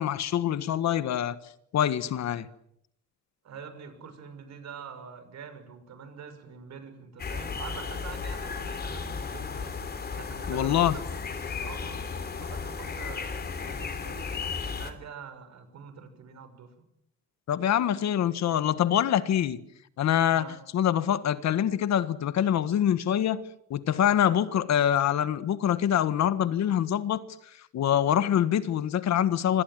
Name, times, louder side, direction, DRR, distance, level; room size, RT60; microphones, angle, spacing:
voice 1, 0.0-1.4 1.7-2.5 10.5-11.0 17.5-19.6 20.0-20.5 20.7-23.4 23.7-27.2 27.7-29.6, left 10 dB, 65° left, 1.5 m, -25 dB
voice 2, 3.4-9.8 10.1-11.2 11.6-14.3 14.7-16.7 20.3-20.6, right 6 dB, 65° right, 6.3 m, -45 dB
sound 1, 7.2-14.9, left 5 dB, 35° left, 3.2 m, -34 dB
26.5 x 26.0 x 7.6 m
cardioid pair, 165°, 30 cm